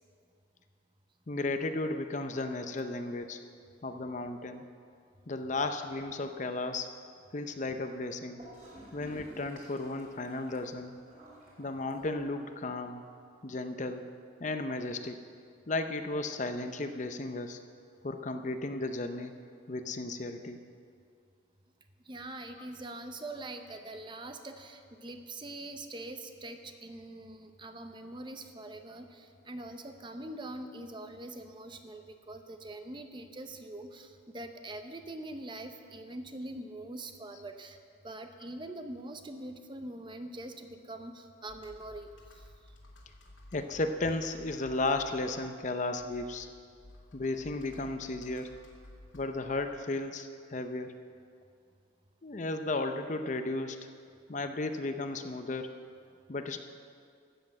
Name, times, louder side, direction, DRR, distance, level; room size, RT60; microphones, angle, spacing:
voice 1, 1.3-3.4 3.8-4.7 5.3-6.9 7.3-8.4 8.9-11.0 11.6-13.0 13.4-14.1 14.4-15.2 15.7-17.6 18.0-19.3 19.7-20.6 22.6-22.7 37.3-37.4 43.5-46.5 47.1-48.5 49.1-50.9 52.2-53.9 54.3-55.7 56.3-56.6, left 2 dB, 40° left, 7 dB, 0.6 m, -34 dB
Gurgling / Toilet flush, 8.4-12.4, right 1 dB, 40° right, 4.1 m, -53 dB
voice 2, 22.0-37.8 38.0-42.7, right 1 dB, 25° right, 6 dB, 0.7 m, -43 dB
Computer keyboard, 41.5-50.1, left 1 dB, 85° left, 2.4 m, -55 dB
13.0 x 8.4 x 7.6 m, 2.3 s
head